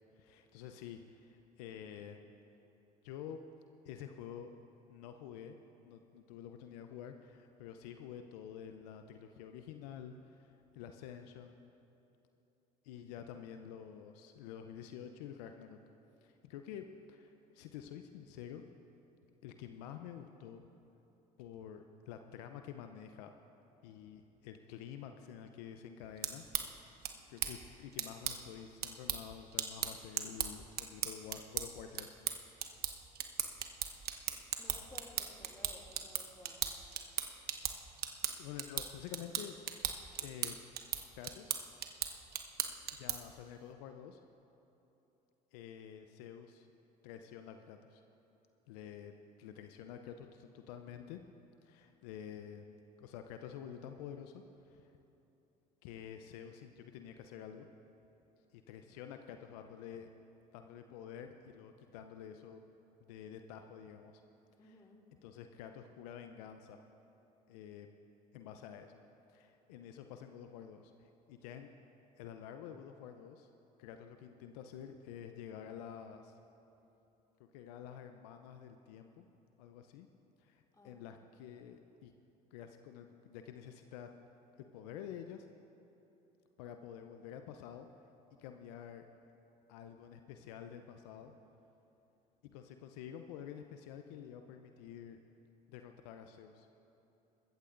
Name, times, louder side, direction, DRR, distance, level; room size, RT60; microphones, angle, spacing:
voice 1, 0.2-2.3 3.0-3.4 3.9-4.5 4.9-5.6 5.8-11.6 12.8-15.8 16.2-18.6 19.4-20.6 21.4-23.3 23.8-26.5 27.0-32.2 38.4-39.6 40.2-40.6 41.2-41.5 42.9-44.2 45.5-46.7 47.0-48.0 48.7-49.1 49.4-51.2 51.6-54.9 55.8-57.7 58.5-60.1 60.5-62.6 63.1-64.2 64.6-64.8 65.2-66.8 67.5-67.9 68.3-69.0 69.3-71.7 72.2-73.5 73.8-76.4 77.5-79.3 79.6-80.1 80.4-82.1 82.5-84.1 84.6-85.5 86.6-87.9 88.4-89.0 89.7-91.3 92.4-95.2 95.7-96.7, left 9 dB, 75° left, 7 dB, 0.6 m, -49 dB
sound 1, 26.0-43.4, right 9 dB, 50° right, 1.0 m, -39 dB
voice 2, 34.6-36.6 64.6-65.0 80.7-81.0, left 1 dB, 20° left, 0 dB, 2.7 m, -56 dB
21.5 x 15.0 x 2.6 m, 3.0 s
hypercardioid pair, 65°, 20 cm